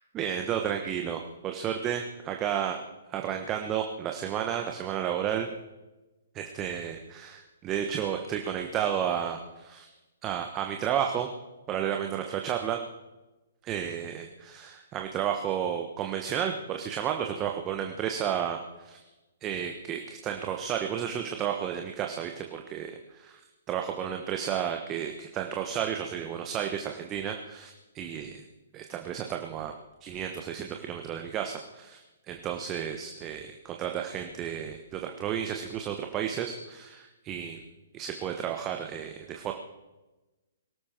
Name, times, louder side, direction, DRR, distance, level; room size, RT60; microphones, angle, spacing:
voice 1, 0.1-2.8 3.1-5.5 6.3-9.9 10.2-11.3 11.7-12.8 13.6-19.0 19.4-23.4 23.7-28.4 28.7-29.7 30.0-37.6 37.9-39.5, right 9 dB, 25° right, 4 dB, 1.3 m, -32 dB
23.0 x 13.5 x 4.5 m, 1.1 s
figure-of-eight pair, 120°, 0 cm